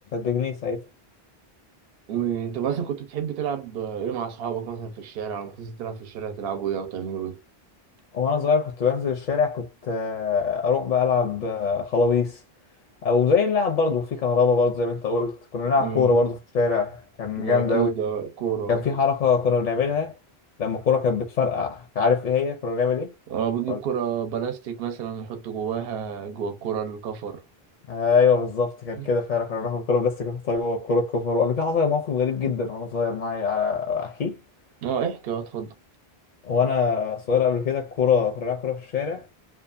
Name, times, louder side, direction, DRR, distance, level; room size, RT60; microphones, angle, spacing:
voice 1, 0.1-0.8 8.1-12.4 13.0-17.9 18.7-20.1 20.6-23.1 23.7-23.8 27.9-34.4 36.4-39.2, left 5 dB, 55° left, 0.6 m, -23 dB
voice 2, 2.1-7.4 15.8-16.2 17.4-18.8 23.3-27.4 29.0-29.1 34.8-35.7, right 8 dB, 70° right, 0.8 m, -29 dB
2.5 x 2.3 x 2.5 m
omnidirectional pair, 1.1 m